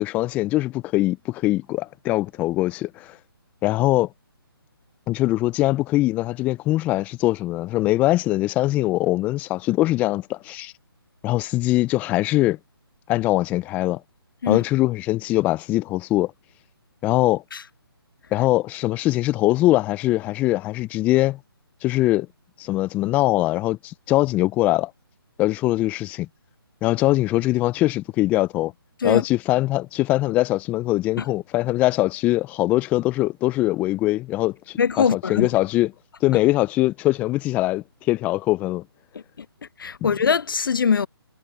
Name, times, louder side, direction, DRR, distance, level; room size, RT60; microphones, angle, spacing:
voice 1, 0.0-3.2 3.6-4.1 5.1-10.7 11.2-12.6 13.1-14.0 14.5-16.3 17.0-17.4 18.3-21.4 21.8-22.3 22.6-24.9 25.4-26.3 26.8-28.7 29.0-35.9 36.2-38.8 40.0-40.1, left 17 dB, 10° left, 0.5 m, -22 dB
voice 2, 34.8-35.5 39.1-39.5 39.8-41.1, left 6 dB, 60° left, 0.5 m, -22 dB
figure-of-eight pair, 145°, 13 cm